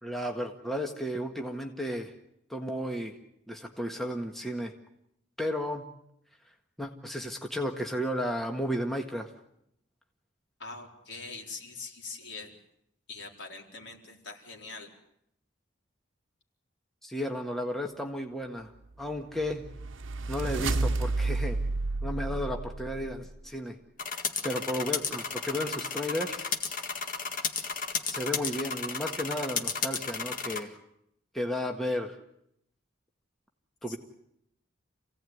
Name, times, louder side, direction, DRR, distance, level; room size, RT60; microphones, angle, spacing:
voice 1, 0.0-2.1 2.5-3.2 3.5-4.7 5.4-5.9 6.8-9.3 17.0-18.7 19.0-19.6 20.3-21.6 22.0-23.8 24.4-26.5 28.0-30.7 31.3-32.2 33.8-34.0, equal, ahead, 2 dB, 1.6 m, -33 dB
voice 2, 10.6-12.5 13.1-14.9 33.9-34.0, left 4 dB, 65° left, 1 dB, 4.3 m, -43 dB
sound 1, 19.1-23.4, right 3 dB, 85° right, 0.9 m, -31 dB
sound 2, 24.0-30.6, left 5 dB, 45° left, 1.9 m, -33 dB
27.5 x 17.0 x 9.4 m, 0.78 s
head